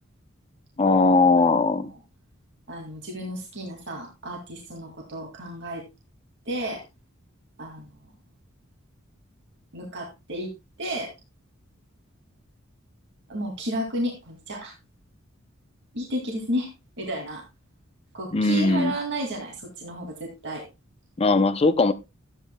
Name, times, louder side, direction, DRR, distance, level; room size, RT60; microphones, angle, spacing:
voice 1, 0.8-1.9 18.3-18.9 21.2-21.9, left 3 dB, 30° left, 13 dB, 0.5 m, -19 dB
voice 2, 2.7-5.8 6.5-6.8 7.6-7.9 9.7-10.5 10.8-11.1 13.3-14.7 15.9-16.7 17.0-17.4 18.1-20.7, equal, 60° right, 1 dB, 2.2 m, -32 dB
13.0 x 9.0 x 2.2 m, 0.24 s
head